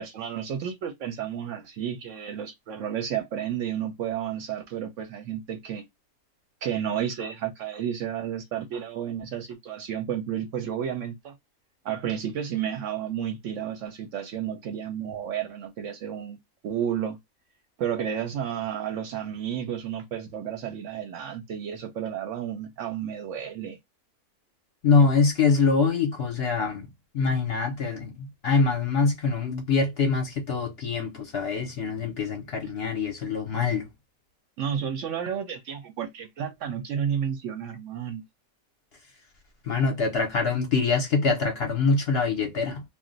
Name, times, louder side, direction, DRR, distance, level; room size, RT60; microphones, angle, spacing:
voice 1, 0.0-5.9 6.6-11.3 11.8-16.4 16.6-17.2 17.8-23.8 34.6-38.2, right 9 dB, 70° right, 0.8 m, -31 dB
voice 2, 24.8-26.9 27.1-33.9 39.6-42.8, left 4 dB, 55° left, 0.7 m, -24 dB
2.4 x 2.1 x 3.7 m
omnidirectional pair, 1.5 m